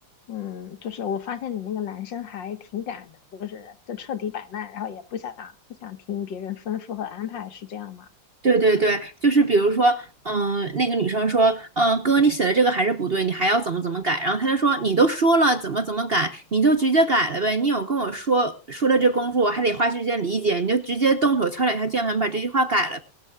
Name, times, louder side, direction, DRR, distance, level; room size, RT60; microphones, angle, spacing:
voice 1, 0.3-8.1, left 9 dB, 70° left, 2.1 m, -33 dB
voice 2, 8.4-23.0, right 3 dB, 40° right, 1.0 m, -21 dB
22.5 x 12.5 x 2.4 m
omnidirectional pair, 2.1 m